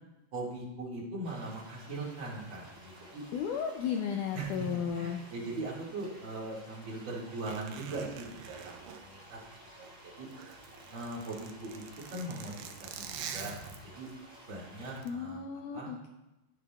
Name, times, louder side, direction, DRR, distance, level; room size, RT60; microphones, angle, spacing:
voice 1, 0.3-3.2 4.3-9.4 9.8-10.3 10.9-11.8 12.1-13.6 13.9-14.1 14.5-15.4 15.7-16.0, right 2 dB, 35° right, -4 dB, 2.5 m, -40 dB
sound 1, 1.2-15.0, equal, 20° right, 3.7 m, -54 dB
voice 2, 3.3-5.2 15.1-16.1, left 7 dB, 80° left, 2 dB, 1.9 m, -34 dB
Zipper (clothing), 7.4-9.9 10.2-14.1 14.8-15.1, right 7 dB, 85° right, 2.5 m, -45 dB
16.0 x 7.2 x 2.4 m, 0.99 s
omnidirectional pair, 4.2 m